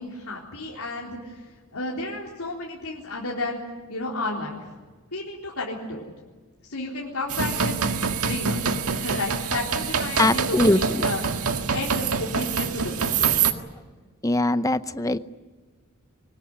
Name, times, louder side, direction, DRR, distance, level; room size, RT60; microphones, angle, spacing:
voice 1, 0.0-3.6 3.9-4.7 5.1-6.1 6.7-11.2 11.7-13.3, left 2 dB, 90° left, -3 dB, 3.9 m, -32 dB
sound 1, 7.3-13.5, right 6 dB, 85° right, 1.8 m, -25 dB
voice 2, 10.2-11.1 14.2-15.2, left 1 dB, 15° left, 12 dB, 0.7 m, -21 dB
24.0 x 19.5 x 9.7 m, 1.3 s
head